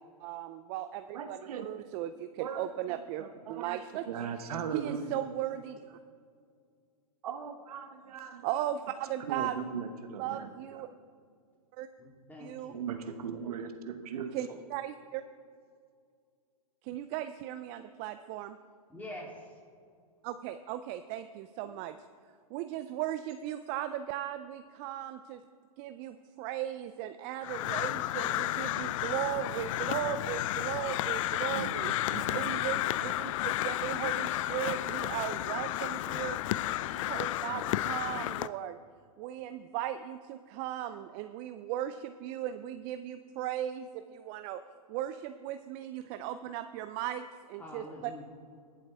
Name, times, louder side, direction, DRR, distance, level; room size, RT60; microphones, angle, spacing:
voice 1, 0.2-4.1 4.7-6.0 8.4-9.7 10.2-10.9 11.7-11.9 12.4-12.8 14.3-15.2 16.8-18.5 20.2-22.0 22.5-25.4 25.8-31.9 32.3-38.8 39.2-44.6 44.9-48.1, right 12 dB, 35° right, 10 dB, 0.4 m, -37 dB
voice 2, 1.1-1.9 2.4-5.2 7.2-8.5 9.2-10.8 12.7-14.6 21.6-21.7 31.5-32.6, right 6 dB, 70° right, 7 dB, 1.0 m, -39 dB
voice 3, 12.0-12.8 18.9-19.5 47.6-48.3, left 1 dB, 10° left, -3 dB, 3.0 m, -45 dB
Crow, 27.4-38.5, left 14 dB, 55° left, 0.4 m, -32 dB
20.0 x 7.7 x 3.5 m, 2.2 s
hypercardioid pair, 125°, 20 cm